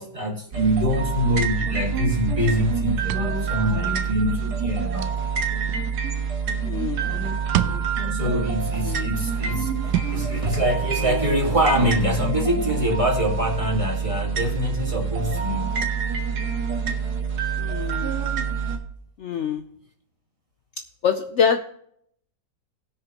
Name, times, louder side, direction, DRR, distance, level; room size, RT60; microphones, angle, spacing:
voice 1, 0.0-5.2 8.1-15.8, equal, 20° right, -1 dB, 1.7 m, -24 dB
sound 1, 0.5-18.8, right 6 dB, 60° right, 1.8 m, -26 dB
sound 2, 2.3-3.8 4.5-5.8 6.8-8.3 9.1-10.3 11.5-12.4, right 12 dB, 80° right, 1.2 m, -32 dB
voice 2, 6.6-7.1 8.8-9.1 17.6-18.1 19.2-19.6 21.0-21.6, left 7 dB, 75° left, 7 dB, 0.6 m, -25 dB
19.5 x 6.6 x 2.9 m, 0.67 s
omnidirectional pair, 1.9 m